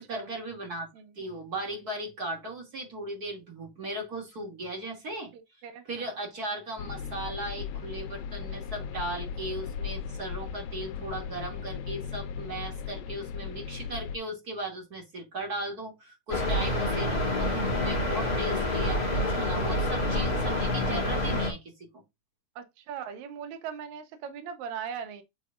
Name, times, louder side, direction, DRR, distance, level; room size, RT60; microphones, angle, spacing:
voice 1, 0.0-0.9 1.2-5.3 5.8-21.6, right 2 dB, 30° right, 2.8 m, -37 dB
voice 2, 5.6-6.1 12.6-12.7 22.6-25.2, right 7 dB, 70° right, 2.3 m, -39 dB
sound 1, 6.8-14.2, left 7 dB, 90° left, 2.3 m, -37 dB
sound 2, 16.3-21.5, left 1 dB, 30° left, 3.0 m, -27 dB
9.1 x 4.9 x 2.5 m
omnidirectional pair, 3.6 m